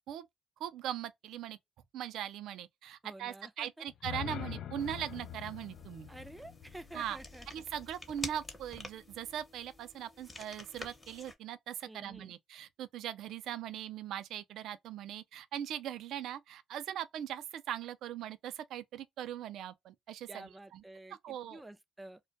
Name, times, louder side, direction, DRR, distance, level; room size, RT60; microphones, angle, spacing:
voice 1, 0.6-1.6 1.9-6.1 6.9-7.2 7.5-20.8 21.1-21.6, right 10 dB, 75° right, 0.3 m, -40 dB
voice 2, 3.0-3.7 6.1-7.5 11.8-12.3 20.3-22.2, right 1 dB, 15° right, 0.4 m, -50 dB
sound 1, 3.9-7.9, left 10 dB, 70° left, 0.3 m, -45 dB
sound 2, 4.8-11.4, left 2 dB, 25° left, 0.8 m, -49 dB
2.2 x 2.1 x 2.6 m
supercardioid pair, 65°, 0 cm